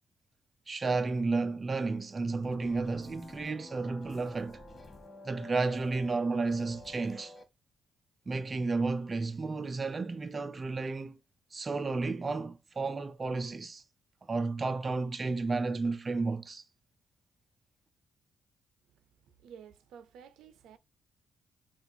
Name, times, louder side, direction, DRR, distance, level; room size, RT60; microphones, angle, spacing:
voice 1, 0.7-4.6 5.2-7.3 8.3-11.2 11.5-13.8 14.2-16.6, right 3 dB, 30° right, 0.4 m, -32 dB
sound 1, 2.4-7.4, left 1 dB, 30° left, 0.8 m, -49 dB
voice 2, 18.9-20.8, right 7 dB, 90° right, 0.5 m, -53 dB
4.2 x 2.3 x 2.6 m
cardioid pair, 100°, 0 cm